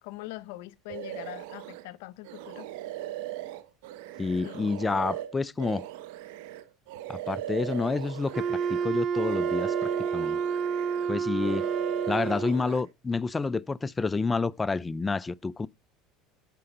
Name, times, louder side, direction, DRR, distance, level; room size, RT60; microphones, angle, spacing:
voice 1, 0.0-2.7 4.4-4.7, left 18 dB, 80° left, 0.6 m, -42 dB
sound 1, 0.9-1.8 2.2-8.9 9.1-11.1 11.4-12.8, right 13 dB, 80° right, 0.9 m, -38 dB
voice 2, 4.2-5.9 7.1-10.4 11.1-11.7 12.1-15.7, left 4 dB, 20° left, 0.4 m, -29 dB
Wind instrument woodwind instrument, 8.3-12.6, right 6 dB, 40° right, 0.6 m, -29 dB
10.0 x 4.9 x 5.3 m
supercardioid pair, 100°, 0 cm